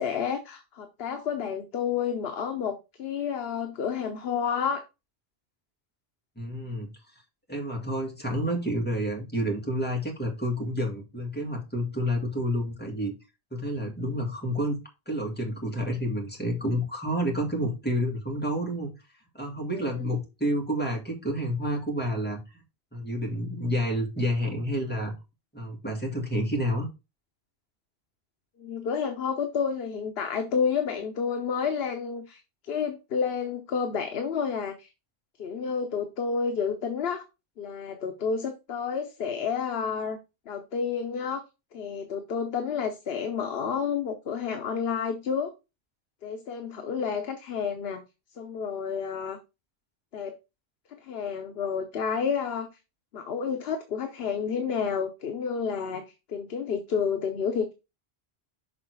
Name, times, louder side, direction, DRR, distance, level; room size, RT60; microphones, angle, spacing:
voice 1, 0.0-4.8 19.8-19.9 28.6-34.9 35.4-37.2 37.6-40.2 40.5-41.4 41.7-45.5 46.2-48.0 48.4-49.4 50.1-50.4 51.0-52.7 53.1-56.0 56.3-57.7, left 6 dB, 70° left, 1.0 m, -30 dB
voice 2, 6.4-6.9 7.5-13.1 13.5-18.9 19.3-22.4 22.9-25.1 25.5-26.9, equal, 10° left, 1.9 m, -29 dB
6.4 x 3.8 x 4.6 m
omnidirectional pair, 1.1 m